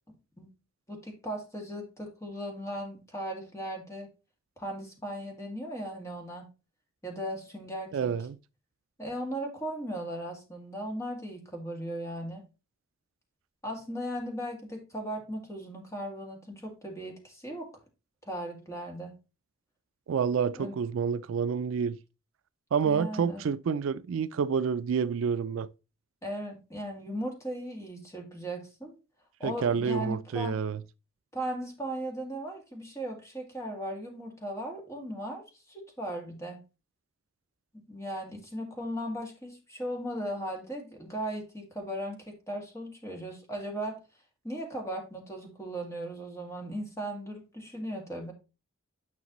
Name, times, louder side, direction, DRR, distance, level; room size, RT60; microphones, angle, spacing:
voice 1, 0.9-4.1 4.6-6.5 7.0-8.1 9.0-12.4 13.6-17.7 18.2-19.2 20.6-20.7 22.8-23.4 26.2-29.0 29.4-30.6 31.3-36.6 37.7-44.0 44.4-48.3, right 1 dB, 15° left, 2.1 m, -37 dB
voice 2, 7.9-8.4 20.1-22.0 22.7-25.7 29.4-30.8, right 6 dB, 65° right, 0.3 m, -28 dB
9.6 x 5.9 x 3.0 m
head